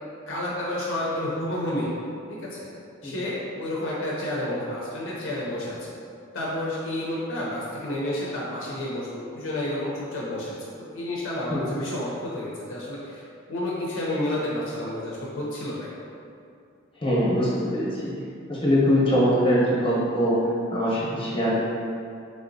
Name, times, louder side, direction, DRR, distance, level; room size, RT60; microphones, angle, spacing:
voice 1, 0.3-1.9 2.3-2.7 3.0-5.8 6.3-10.6 10.9-13.2 13.5-15.8, left 1 dB, 65° left, -5 dB, 0.5 m, -30 dB
voice 2, 17.0-18.1 18.5-20.4 20.7-21.6, equal, 25° left, -7 dB, 0.9 m, -22 dB
3.2 x 2.7 x 2.6 m, 2.5 s
head